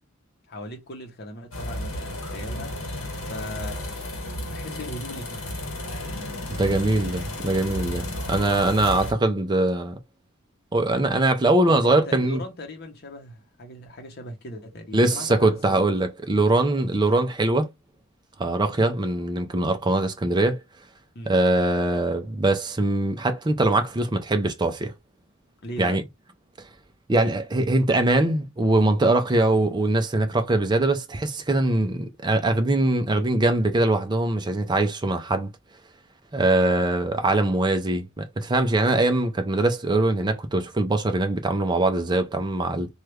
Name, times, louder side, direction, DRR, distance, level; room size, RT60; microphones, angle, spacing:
voice 1, 0.5-2.7 3.3-5.6 11.7-15.9 21.1-21.3 25.6-26.0, left 1 dB, 50° left, 0.8 m, -38 dB
sound 1, 1.5-9.1, left 1 dB, 90° left, 1.0 m, -33 dB
voice 2, 6.5-10.0 10.7-12.4 14.9-17.7 18.4-20.6 21.3-24.9 25.8-26.0 27.1-35.5 36.3-42.9, right 2 dB, 20° right, 0.5 m, -22 dB
3.2 x 2.3 x 3.1 m
head